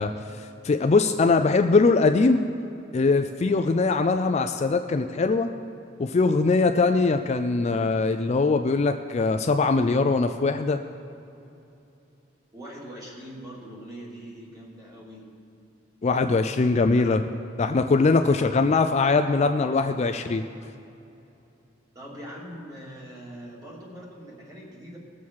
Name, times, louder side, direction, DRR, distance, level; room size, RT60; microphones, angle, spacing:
voice 1, 0.0-2.4 2.9-5.5 6.0-10.8 16.0-17.2 17.6-20.4, left 3 dB, 35° left, 7 dB, 0.4 m, -22 dB
voice 2, 12.5-15.3 16.9-17.0 18.2-19.1 19.6-19.9 21.9-25.0, equal, 20° right, -5 dB, 2.8 m, -42 dB
19.0 x 7.1 x 4.7 m, 2.8 s
head